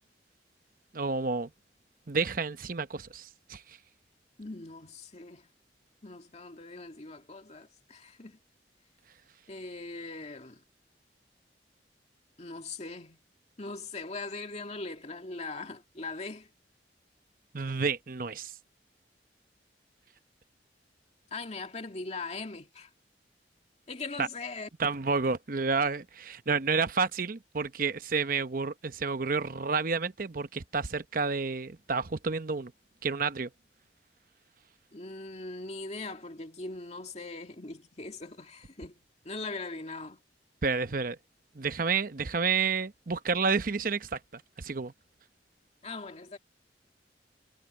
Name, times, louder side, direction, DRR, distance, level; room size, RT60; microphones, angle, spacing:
voice 1, 0.9-1.5 2.1-3.6 17.5-18.5 24.2-24.3 24.8-32.7 33.0-33.5 40.6-41.2 41.5-44.9, right 4 dB, 50° right, 0.8 m, -30 dB
voice 2, 4.4-5.5 6.0-8.4 9.5-10.6 12.4-13.2 13.6-16.5 21.3-22.9 23.9-24.7 34.9-38.9 39.2-40.2 45.8-46.4, left 3 dB, 40° left, 2.3 m, -40 dB
head